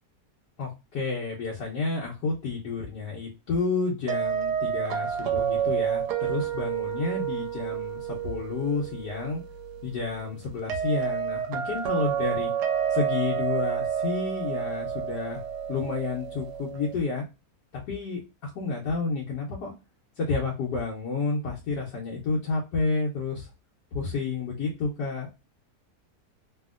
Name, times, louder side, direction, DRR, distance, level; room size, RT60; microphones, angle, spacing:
voice 1, 0.6-9.4 9.8-12.5 12.9-15.4 15.7-17.2 17.9-19.7 20.2-23.5 23.9-25.3, left 4 dB, 75° left, -4 dB, 1.3 m, -30 dB
sound 1, 4.1-16.9, right 8 dB, 75° right, 1.1 m, -30 dB
3.0 x 2.7 x 2.3 m, 0.27 s
omnidirectional pair, 1.9 m